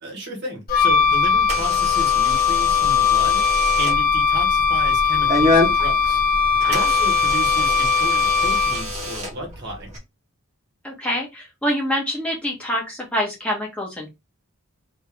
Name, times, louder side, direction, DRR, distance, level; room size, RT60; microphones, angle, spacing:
voice 1, 0.0-6.2 6.7-9.9, right 2 dB, 50° right, 1.8 m, -33 dB
Wind instrument woodwind instrument, 0.7-9.0, left 6 dB, 40° left, 1.4 m, -19 dB
Door / Alarm, 0.7-10.0, left 1 dB, 30° right, 1.9 m, -28 dB
voice 2, 10.8-14.1, equal, 5° left, 1.8 m, -26 dB
4.0 x 3.5 x 3.5 m
head